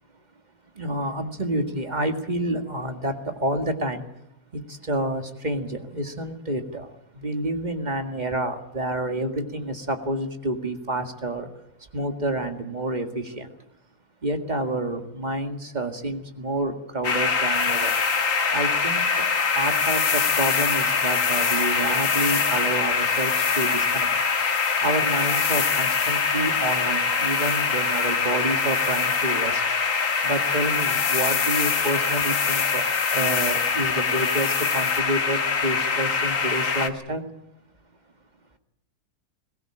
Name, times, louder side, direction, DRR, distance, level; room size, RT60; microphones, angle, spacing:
voice 1, 0.8-4.1 4.5-11.5 11.9-13.5 14.2-17.9 18.5-19.3 19.5-24.1 24.8-29.6 30.2-37.2, right 1 dB, 25° right, 6 dB, 2.0 m, -29 dB
sound 1, 17.0-36.9, left 5 dB, 50° left, 2.1 m, -24 dB
sound 2, 17.5-35.0, left 8 dB, 90° left, 1.7 m, -33 dB
22.0 x 18.0 x 8.7 m, 0.83 s
omnidirectional pair, 1.7 m